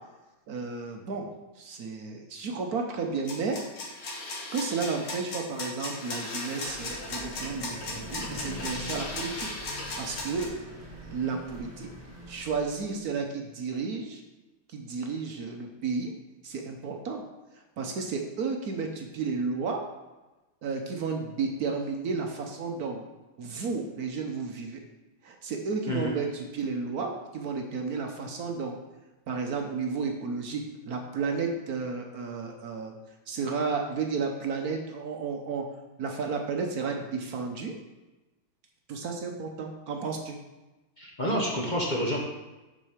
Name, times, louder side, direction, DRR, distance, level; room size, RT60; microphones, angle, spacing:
voice 1, 0.5-1.3 1.6-3.6 4.5-9.5 10.0-10.5 11.0-11.9 12.3-14.2 14.7-16.1 16.4-17.2 17.5-19.8 20.6-23.0 23.4-24.8 25.2-28.8 29.3-33.0 33.3-35.6 36.0-37.7 38.9-40.4, right 4 dB, 60° right, 3 dB, 1.1 m, -32 dB
sound 1, 3.3-10.5, left 2 dB, 60° left, 2.0 m, -36 dB
Vehicle, 6.6-13.0, equal, 5° right, 1.9 m, -43 dB
voice 2, 41.0-42.2, equal, 40° left, -2 dB, 0.7 m, -28 dB
7.2 x 5.5 x 5.0 m, 1.1 s
omnidirectional pair, 2.2 m